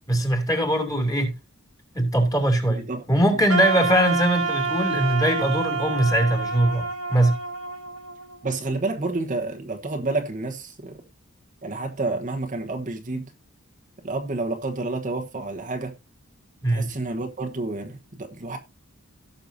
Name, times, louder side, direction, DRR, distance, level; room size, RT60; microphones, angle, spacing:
voice 1, 0.1-1.3 1.9-7.4 16.6-16.9, right 1 dB, 15° left, 2.7 m, -21 dB
Wind instrument woodwind instrument, 3.5-8.5, right 4 dB, 85° right, 2.0 m, -28 dB
voice 2, 8.4-11.0 11.6-13.3 14.0-15.9 16.7-18.6, right 2 dB, 35° right, 1.2 m, -29 dB
17.0 x 6.7 x 2.7 m
head